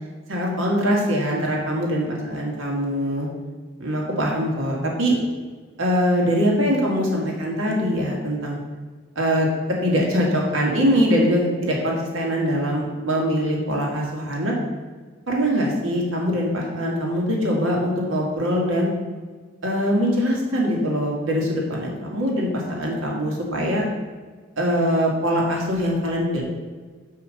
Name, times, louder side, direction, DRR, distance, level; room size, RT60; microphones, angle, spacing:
voice 1, 0.3-3.3 3.8-5.2 5.8-8.6 9.2-9.5 9.8-14.6 15.3-18.9 19.6-23.8 24.6-26.4, equal, 85° right, -2 dB, 1.9 m, -22 dB
5.6 x 4.8 x 6.4 m, 1.4 s
head